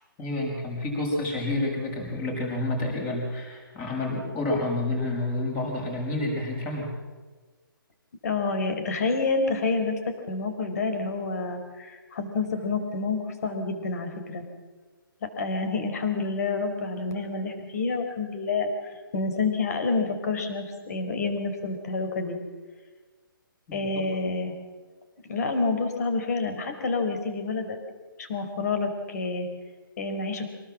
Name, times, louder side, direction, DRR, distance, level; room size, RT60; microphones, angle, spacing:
voice 1, 0.2-6.9, left 2 dB, 15° left, 0 dB, 6.0 m, -29 dB
voice 2, 8.2-14.4 15.2-22.4 23.7-24.5 25.2-27.8 28.2-29.5 30.0-30.5, left 3 dB, 45° left, 7 dB, 4.4 m, -28 dB
24.5 x 18.5 x 7.6 m, 1.4 s
hypercardioid pair, 165°, 12 cm